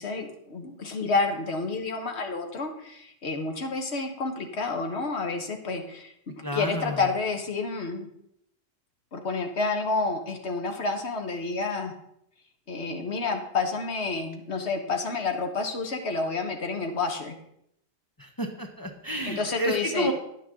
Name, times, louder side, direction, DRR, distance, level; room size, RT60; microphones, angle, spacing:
voice 1, 0.0-8.1 9.1-11.9 12.7-17.3 19.3-20.1, left 3 dB, 80° left, 4 dB, 1.5 m, -29 dB
voice 2, 6.4-7.0 18.2-20.1, right 1 dB, 20° left, 2 dB, 0.9 m, -30 dB
10.0 x 9.2 x 3.8 m, 0.76 s
omnidirectional pair, 1.1 m